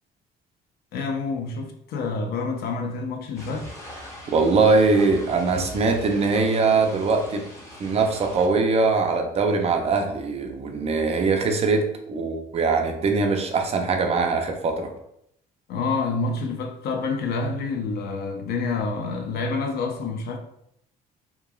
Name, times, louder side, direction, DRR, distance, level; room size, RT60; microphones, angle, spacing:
voice 1, 0.9-3.7 15.7-20.4, left 4 dB, 70° left, 3 dB, 0.5 m, -28 dB
sound 1, 3.4-8.5, equal, 15° left, 0.7 m, -41 dB
voice 2, 4.3-7.5 7.8-14.9, right 4 dB, 40° right, 4 dB, 0.4 m, -22 dB
3.0 x 2.2 x 2.2 m, 0.74 s
cardioid pair, 110°, 17 cm